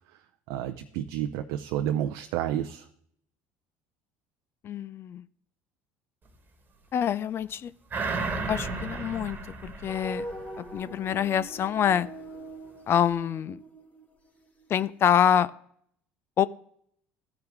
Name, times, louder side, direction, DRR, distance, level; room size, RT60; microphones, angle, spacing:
voice 1, 0.5-2.9, right 11 dB, 75° right, 7 dB, 0.5 m, -30 dB
voice 2, 4.6-5.2 6.9-7.7 8.5-10.2 10.6-12.1 12.9-13.6 14.7-15.5 16.4-16.5, left 9 dB, 45° left, 17 dB, 0.4 m, -26 dB
sound 1, 7.9-10.8 11.2-11.3, right 3 dB, 35° right, 1.4 m, -33 dB
sound 2, 9.8-14.7, right 1 dB, 25° left, 2.0 m, -42 dB
14.0 x 4.8 x 3.5 m, 0.66 s
supercardioid pair, 85°, 6 cm